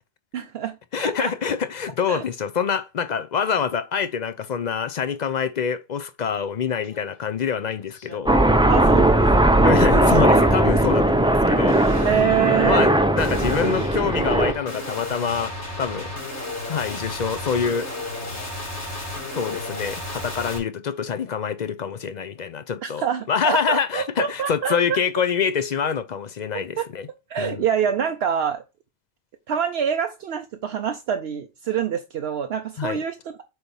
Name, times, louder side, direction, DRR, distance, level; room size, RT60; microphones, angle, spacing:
voice 1, 0.3-1.3 2.1-2.2 8.7-9.7 12.0-12.8 22.8-25.0 26.8-26.9 27.3-28.6 29.5-33.2, right 8 dB, 70° right, 0.9 m, -25 dB
voice 2, 0.9-8.4 9.6-12.2 12.6-16.1 16.7-17.9 19.3-27.1 27.4-27.6 32.8-33.0, left 6 dB, 50° left, 0.6 m, -26 dB
sound 1, 6.8-7.0 7.4-8.2 8.7-9.1 10.2-10.8 11.7-20.6, left 2 dB, 80° left, 2.5 m, -34 dB
Aircraft, 8.3-14.5, right 1 dB, 10° right, 0.3 m, -18 dB
7.9 x 3.0 x 5.3 m
omnidirectional pair, 1.1 m